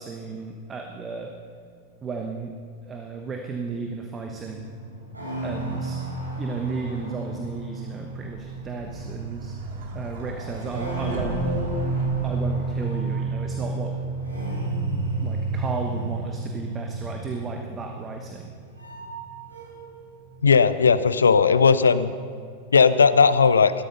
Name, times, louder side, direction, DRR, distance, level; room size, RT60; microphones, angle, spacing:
voice 1, 0.0-1.3 2.0-2.5 2.8-4.7 5.4-6.0 6.4-9.6 9.9-11.4 12.2-13.9 14.9-18.5, right 4 dB, 20° right, 3 dB, 1.3 m, -34 dB
sound 1, 4.2-20.0 20.3-21.1, right 3 dB, 80° right, 3.7 m, -31 dB
sound 2, 8.3-13.2, right 3 dB, 55° right, 2.2 m, -38 dB
voice 2, 20.4-22.1 22.7-23.7, left 5 dB, 70° left, 14 dB, 0.6 m, -17 dB
16.5 x 13.5 x 5.5 m, 2.2 s
figure-of-eight pair, 90°, 0 cm